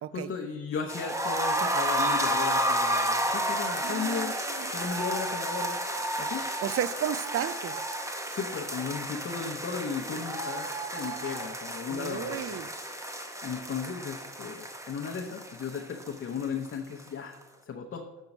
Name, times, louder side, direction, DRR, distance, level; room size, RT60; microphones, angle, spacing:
voice 1, 0.1-4.4 4.7-5.9 6.2-6.5 8.3-12.6 13.4-17.4 17.7-18.0, left 6 dB, 45° left, 1 dB, 0.8 m, -35 dB
sound 1, 0.9-16.7 17.0-17.1 17.4-17.5, right 1 dB, 10° right, 0.9 m, -31 dB
voice 2, 3.8-4.7 6.6-7.8 11.9-12.7, right 10 dB, 50° right, 16 dB, 0.4 m, -33 dB
7.2 x 4.5 x 5.3 m, 1.0 s
cardioid pair, 90°, 30 cm